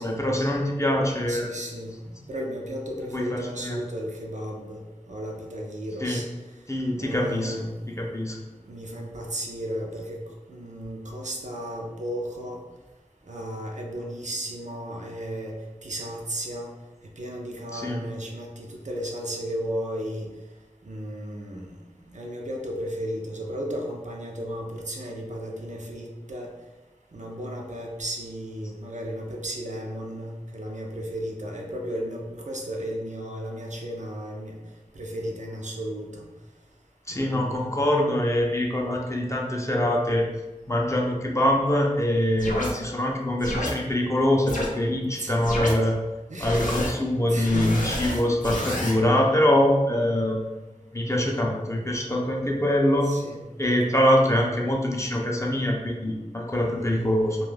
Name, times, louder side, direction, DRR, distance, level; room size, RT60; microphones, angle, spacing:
voice 1, 0.0-1.5 3.1-3.8 6.0-6.2 6.7-7.7 8.0-8.4 17.7-18.0 37.1-40.2 40.7-46.0 46.4-50.5 50.9-53.1 53.6-57.4, left 1 dB, 20° left, -1 dB, 0.5 m, -24 dB
voice 2, 1.3-1.9 2.3-4.8 5.1-6.2 7.0-7.7 8.7-10.2 10.5-12.6 13.3-15.5 15.8-16.7 17.2-20.3 20.8-21.7 22.1-26.5 27.1-34.5 35.0-36.2 37.1-37.7 45.1-45.3 46.3-46.7 47.2-47.7 48.5-49.2 53.0-53.5 56.5-57.1, equal, 65° right, 0 dB, 0.5 m, -34 dB
sound 1, 42.4-42.7 43.4-43.7 44.5-44.7 45.4-45.7 46.4-46.9 47.4-48.9, left 1 dB, 75° left, 0.5 m, -29 dB
2.3 x 2.1 x 3.2 m, 1.1 s
wide cardioid pair, 50°, 13 cm